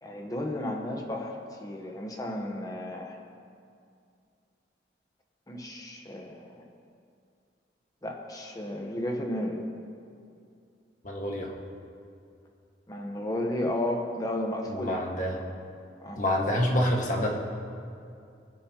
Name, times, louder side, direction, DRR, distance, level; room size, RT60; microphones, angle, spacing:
voice 1, 0.0-3.2 5.5-6.6 8.0-9.6 12.9-15.0 16.0-16.2, left 1 dB, 20° left, 1 dB, 1.1 m, -33 dB
voice 2, 11.0-11.5 14.7-15.4 16.2-17.3, left 1 dB, 45° left, -1 dB, 1.7 m, -27 dB
21.5 x 10.5 x 3.0 m, 2.4 s
head